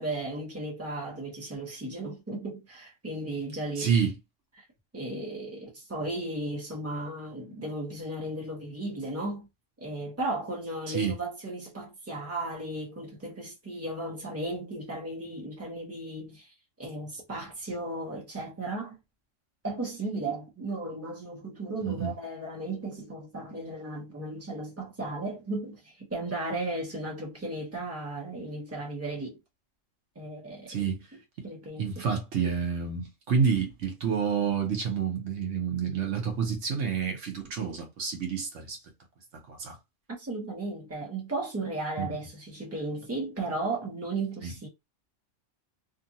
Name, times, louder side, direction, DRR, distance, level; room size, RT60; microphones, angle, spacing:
voice 1, 0.0-3.9 4.6-4.7 4.9-9.5 9.8-19.0 19.6-29.4 30.1-30.9 31.4-31.9 40.1-44.7, right 2 dB, 15° right, 1.0 m, -35 dB
voice 2, 3.8-4.1 10.9-11.1 21.9-22.1 30.7-31.1 31.4-31.5 31.8-38.8 39.5-39.8 42.0-42.1 44.4-44.6, right 6 dB, 75° right, 1.2 m, -29 dB
2.7 x 2.6 x 2.6 m
omnidirectional pair, 1.3 m